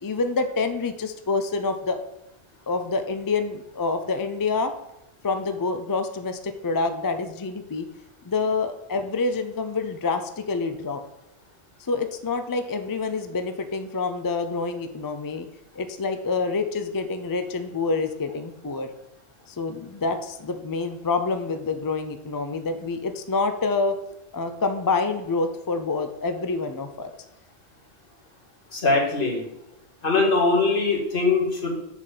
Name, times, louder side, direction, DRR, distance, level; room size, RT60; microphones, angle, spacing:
voice 1, 0.0-2.0 2.7-4.7 5.2-7.9 8.2-11.0 11.9-15.5 15.8-18.9 19.5-27.1, left 4 dB, 35° left, 8 dB, 0.3 m, -27 dB
voice 2, 28.7-29.4 30.0-31.8, left 3 dB, 55° left, -2 dB, 2.0 m, -22 dB
7.2 x 4.4 x 6.6 m, 0.86 s
omnidirectional pair, 1.1 m